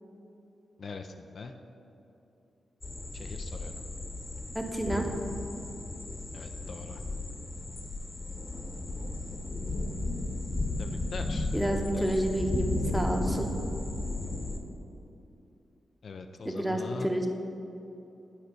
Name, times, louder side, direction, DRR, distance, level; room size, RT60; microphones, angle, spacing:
voice 1, 0.8-1.5 3.1-3.8 6.3-7.0 10.8-12.2 16.0-17.1, left 4 dB, 65° left, 5 dB, 0.4 m, -42 dB
sound 1, 2.8-14.6, left 2 dB, 45° left, 1.0 m, -34 dB
voice 2, 4.5-5.1 11.5-13.5 16.4-17.3, right 1 dB, 10° right, 2 dB, 1.1 m, -29 dB
8.6 x 5.0 x 4.5 m, 2.9 s
supercardioid pair, 40°, 0 cm